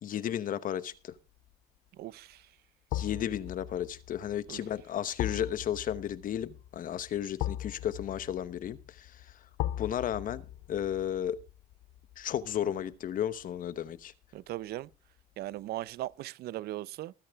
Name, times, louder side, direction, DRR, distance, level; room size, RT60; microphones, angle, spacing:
voice 1, 0.0-1.1 2.9-9.3 9.8-11.4 12.2-14.1, left 10 dB, 55° left, 1.0 m, -34 dB
sound 1, 1.1-1.5 2.9-13.9 14.2-14.4, left 13 dB, 75° left, 0.5 m, -40 dB
voice 2, 2.0-2.5 4.5-4.6 14.3-14.9 15.4-17.1, right 15 dB, 70° right, 0.5 m, -38 dB
19.5 x 8.8 x 3.5 m
cardioid pair, 110°, 17 cm